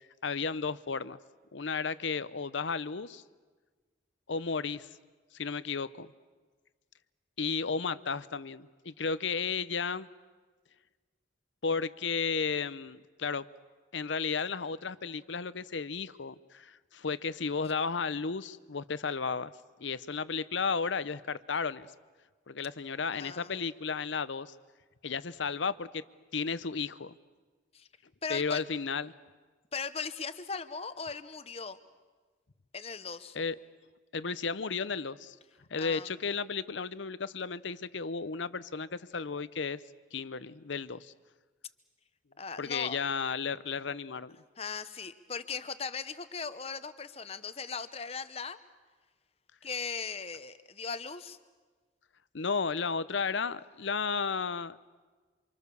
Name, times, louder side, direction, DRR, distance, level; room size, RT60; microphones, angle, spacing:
voice 1, 0.2-1.2 1.5-3.2 4.3-4.9 5.3-6.1 7.4-10.1 11.6-13.4 13.9-19.5 19.8-21.9 22.5-24.5 25.0-26.0 26.3-27.1 28.3-29.1 33.3-33.6 34.1-35.4 35.7-39.8 40.1-41.1 42.6-44.4 52.3-54.8, left 5 dB, 75° left, 16 dB, 0.8 m, -33 dB
voice 2, 23.1-23.5 27.7-27.9 28.2-28.6 29.7-31.8 32.7-33.4 35.8-36.1 42.4-43.0 44.6-48.6 49.6-51.4, left 5 dB, 30° left, 12 dB, 0.9 m, -38 dB
28.5 x 26.5 x 6.9 m, 1.4 s
head